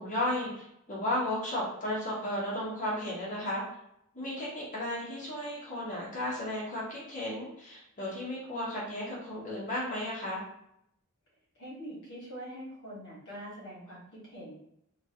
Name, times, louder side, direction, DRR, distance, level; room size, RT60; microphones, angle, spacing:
voice 1, 0.0-3.6 4.1-10.4, left 1 dB, 35° left, -7 dB, 1.0 m, -34 dB
voice 2, 11.5-14.5, equal, 55° left, -5 dB, 1.3 m, -44 dB
2.9 x 2.3 x 2.8 m, 0.76 s
head